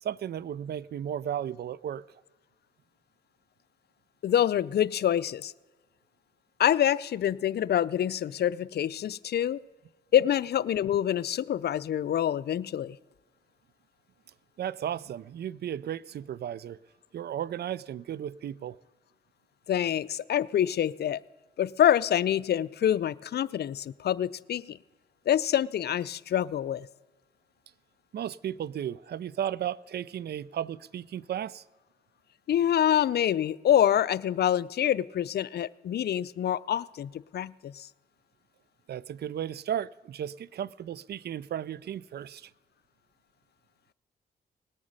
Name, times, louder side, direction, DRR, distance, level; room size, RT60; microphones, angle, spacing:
voice 1, 0.0-2.0 14.6-16.8 17.1-18.8 28.1-31.6 38.9-42.5, right 10 dB, 60° right, 0.4 m, -34 dB
voice 2, 4.2-5.5 6.6-9.6 10.1-13.0 19.7-21.2 21.6-24.8 25.3-26.9 32.5-37.9, left 10 dB, 60° left, 0.4 m, -26 dB
19.5 x 8.7 x 5.4 m
supercardioid pair, 50°, 19 cm